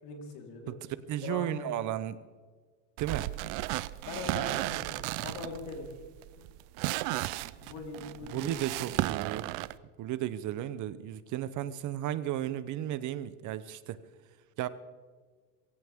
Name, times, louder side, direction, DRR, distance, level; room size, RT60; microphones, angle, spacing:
voice 1, 0.0-0.7 1.2-1.7 4.0-5.9 7.6-8.8, left 3 dB, 65° left, 1 dB, 3.9 m, -41 dB
voice 2, 0.7-2.2 3.0-3.3 8.3-9.6 10.0-14.0 14.6-14.7, right 12 dB, 45° right, 15 dB, 0.7 m, -34 dB
sound 1, 3.0-9.7, right 18 dB, 80° right, 0.7 m, -34 dB
23.0 x 16.0 x 3.6 m, 1.5 s
cardioid pair, 155°, 42 cm